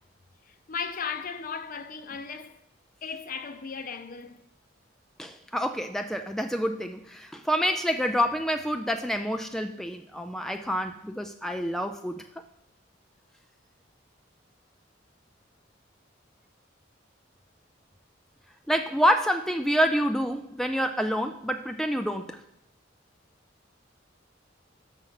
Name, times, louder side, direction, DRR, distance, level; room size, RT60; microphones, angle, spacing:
voice 1, 0.5-2.6 3.0-4.4, left 6 dB, 45° left, 0.6 m, -36 dB
voice 2, 5.2-12.4 18.7-22.4, equal, ahead, 0.3 m, -27 dB
6.5 x 6.3 x 5.6 m
head